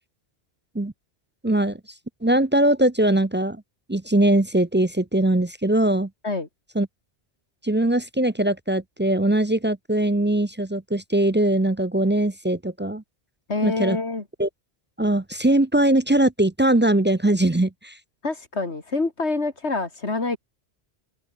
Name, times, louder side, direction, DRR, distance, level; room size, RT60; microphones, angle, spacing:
voice 1, 1.4-1.8 2.2-3.6 3.9-6.1 6.7-6.9 7.6-13.0 13.6-14.0 14.4-14.5 15.0-18.0, right 1 dB, 15° right, 0.4 m, -21 dB
voice 2, 13.5-14.2 18.2-20.4, left 3 dB, 80° left, 3.2 m, -26 dB
omnidirectional pair, 1.1 m